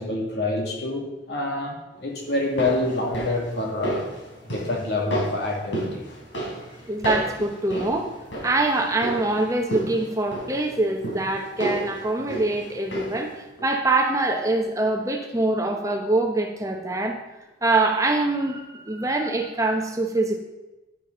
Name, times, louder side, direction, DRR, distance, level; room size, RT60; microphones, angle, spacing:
voice 1, 0.0-4.1 4.5-6.0, left 2 dB, 60° left, 0 dB, 2.3 m, -27 dB
sound 1, 2.3-13.3 13.6-13.7, right 1 dB, 90° left, 4.1 m, -33 dB
voice 2, 6.9-8.1 8.4-17.2 17.6-20.4, right 2 dB, 15° right, 3 dB, 0.9 m, -24 dB
11.0 x 10.5 x 3.9 m, 1.0 s
head